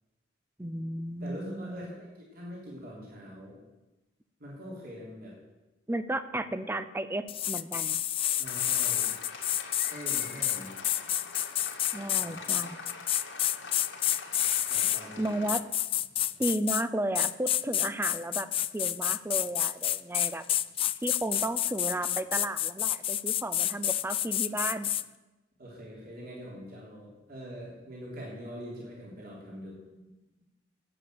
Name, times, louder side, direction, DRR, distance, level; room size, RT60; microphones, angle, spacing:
voice 1, 0.6-1.8 5.9-8.0 11.9-12.8 15.2-15.6 16.4-20.4 21.0-24.9, right 1 dB, 10° right, 12 dB, 0.6 m, -33 dB
voice 2, 1.2-3.6 4.4-5.3 8.4-9.1 9.9-10.8 12.2-12.6 14.7-15.5 16.2-16.3 25.6-30.1, equal, 55° right, -4 dB, 3.4 m, -44 dB
sound 1, 7.3-15.0 15.5-16.8 17.1-25.0, left 12 dB, 30° left, 0.3 m, -29 dB
Applause, 8.4-15.5, left 3 dB, 85° left, 2.3 m, -44 dB
11.0 x 8.5 x 7.8 m, 1.1 s
head